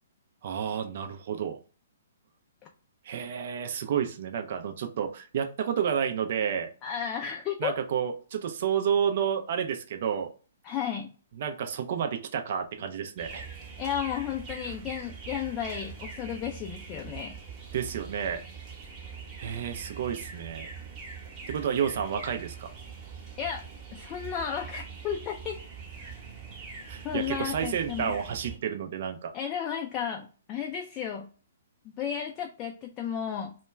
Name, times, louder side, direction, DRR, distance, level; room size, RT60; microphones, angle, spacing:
voice 1, 0.4-1.6 3.0-6.7 7.6-10.3 11.4-13.5 17.7-18.4 19.4-20.7 21.5-22.7 26.0-26.1 26.9-29.3, right 8 dB, 55° right, 6 dB, 0.4 m, -30 dB
voice 2, 6.8-7.8 10.6-11.1 13.8-17.4 23.4-23.6 23.9-25.6 27.0-28.1 29.3-31.3 32.0-33.6, left 8 dB, 30° left, 2 dB, 0.4 m, -33 dB
sound 1, 13.2-28.6, right 5 dB, 20° right, 0.9 m, -43 dB
2.2 x 2.1 x 3.1 m, 0.37 s
hypercardioid pair, 135°, 0 cm